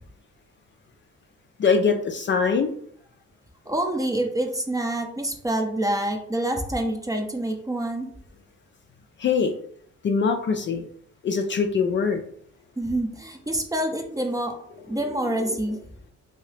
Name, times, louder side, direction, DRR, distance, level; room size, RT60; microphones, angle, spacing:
voice 1, 1.6-2.7 9.2-9.5 10.0-10.9 11.2-12.2 14.9-15.6, left 5 dB, 40° left, 5 dB, 0.4 m, -23 dB
voice 2, 3.7-8.1 12.8-14.5 14.9-15.8, right 1 dB, 10° right, 3 dB, 0.5 m, -27 dB
2.7 x 2.7 x 3.3 m, 0.63 s
cardioid pair, 90°, 30 cm